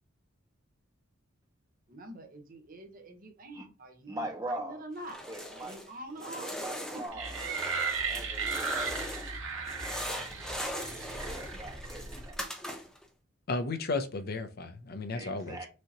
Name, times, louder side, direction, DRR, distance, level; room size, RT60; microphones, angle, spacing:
voice 1, 1.9-5.2 5.5-6.5 7.3-7.9, right 1 dB, 45° right, 1.0 m, -45 dB
voice 2, 4.1-4.8 5.3-5.8 6.6-7.4 8.1-9.2 10.0-12.4 15.1-15.7, right 1 dB, 20° right, 1.2 m, -42 dB
sound 1, 5.0-5.9 6.2-9.4 9.6-13.0, equal, 5° left, 0.8 m, -40 dB
sound 2, 7.1-12.4, right 4 dB, 75° right, 1.3 m, -36 dB
voice 3, 13.5-15.7, left 3 dB, 50° left, 0.6 m, -34 dB
6.2 x 2.9 x 2.9 m
head